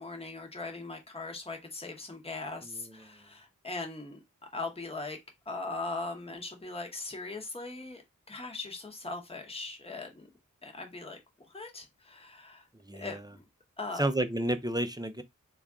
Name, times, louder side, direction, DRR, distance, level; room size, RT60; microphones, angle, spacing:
voice 1, 0.0-4.2 4.5-5.2 5.5-8.0 8.3-10.3 10.6-11.2 11.5-12.7 12.9-13.4 13.8-14.1, left 3 dB, 20° left, 0.9 m, -40 dB
voice 2, 2.6-2.9 12.8-13.2 14.0-15.2, right 1 dB, 15° right, 0.4 m, -31 dB
3.4 x 2.4 x 3.5 m
wide cardioid pair, 65°, 31 cm